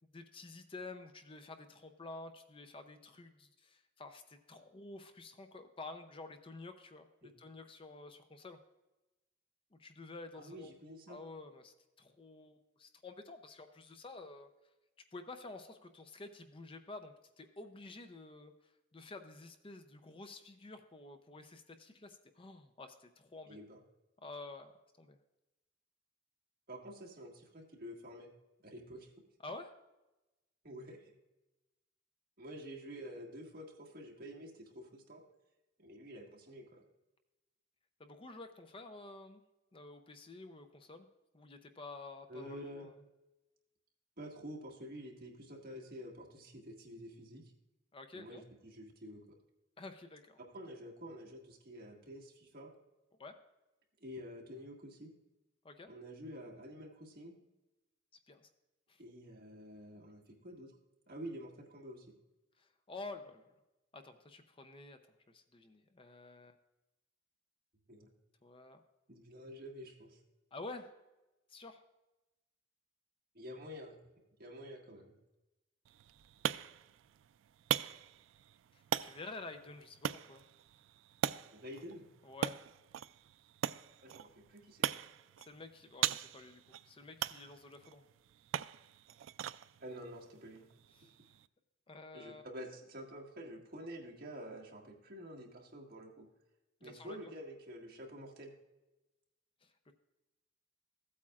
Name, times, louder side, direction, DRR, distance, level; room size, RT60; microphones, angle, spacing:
voice 1, 0.1-8.6 9.7-10.7 11.1-14.5 15.1-23.6 24.2-24.7 25.0-25.2 29.4-29.7 38.0-39.4 39.7-41.1 41.3-43.0 47.9-48.4 49.8-50.4 53.2-53.4 55.6-55.9 58.3-58.5 58.9-59.0 62.6-63.5 63.9-65.0 65.3-66.5 68.4-68.8 70.5-70.9 71.5-71.8 78.7-80.4 82.2-82.6 85.4-88.0 91.0-91.1 91.9-92.5 96.8-97.2 99.6-99.9, left 3 dB, 30° left, 7 dB, 0.6 m, -50 dB
voice 2, 10.4-11.2 23.5-23.8 26.7-28.3 28.6-29.1 30.6-31.1 32.4-35.2 35.8-36.8 42.3-42.9 44.2-47.5 48.1-49.2 50.4-52.7 54.0-55.1 55.9-57.3 59.0-60.7 61.1-62.1 67.9-68.1 69.1-70.2 73.3-74.0 74.4-75.2 81.5-82.0 84.0-84.9 89.8-90.6 92.1-96.3 96.8-98.5, equal, 50° right, -2 dB, 1.9 m, -49 dB
sound 1, 75.8-91.5, right 10 dB, 90° right, 0.3 m, -41 dB
15.0 x 8.5 x 2.4 m, 1.0 s
head